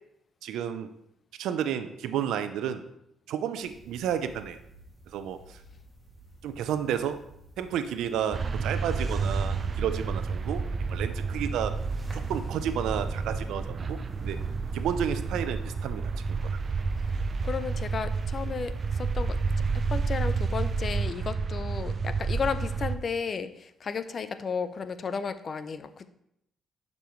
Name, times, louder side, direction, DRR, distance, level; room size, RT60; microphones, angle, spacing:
voice 1, 0.4-0.9 1.4-2.8 3.3-4.6 5.1-5.6 6.4-7.2 7.6-11.8 12.1-14.4 14.7-16.1, right 9 dB, 85° right, 10 dB, 0.6 m, -31 dB
sound 1, 3.6-20.8, right 1 dB, 15° right, 2.2 m, -52 dB
sound 2, 8.3-23.0, right 4 dB, 40° right, 0.5 m, -30 dB
voice 2, 17.0-19.4 19.9-26.1, left 5 dB, 45° left, 11 dB, 0.6 m, -33 dB
11.5 x 5.4 x 3.2 m, 0.77 s
cardioid pair, 90°, 0 cm